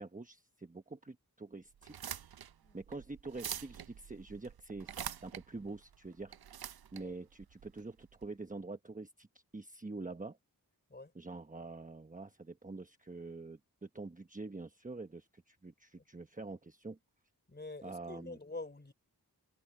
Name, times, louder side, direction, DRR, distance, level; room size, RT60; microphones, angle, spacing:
voice 1, 0.0-2.0 2.7-6.4 6.9-9.3 9.5-10.4 11.1-17.0 17.8-18.4, right 3 dB, 20° right, 1.1 m, -46 dB
sound 1, 1.8-8.3, right 9 dB, 75° right, 0.6 m, -46 dB
voice 2, 17.5-18.9, left 2 dB, 25° left, 3.7 m, -46 dB
wide cardioid pair, 90°, 37 cm